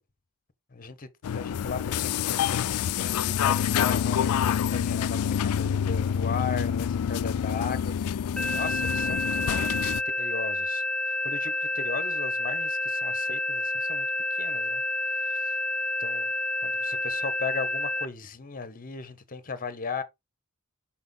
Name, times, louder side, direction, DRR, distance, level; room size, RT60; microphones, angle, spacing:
voice 1, 0.7-1.1 1.3-15.6 16.0-16.3 16.6-20.0, left 5 dB, 40° left, 1.0 m, -37 dB
sound 1, 1.2-10.0, left 8 dB, 80° left, 0.3 m, -27 dB
sound 2, 8.4-18.1, left 2 dB, 5° left, 0.5 m, -29 dB
5.9 x 5.6 x 4.0 m
head